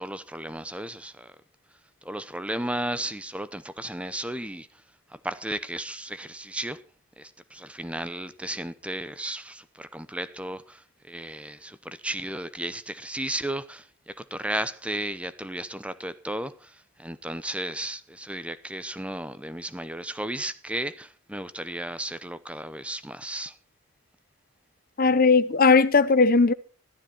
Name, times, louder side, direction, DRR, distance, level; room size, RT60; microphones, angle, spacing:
voice 1, 0.0-1.3 2.0-4.7 5.1-6.8 7.2-23.6, right 1 dB, 5° right, 0.7 m, -34 dB
voice 2, 25.0-26.5, left 4 dB, 40° left, 0.7 m, -18 dB
14.5 x 12.5 x 4.5 m
head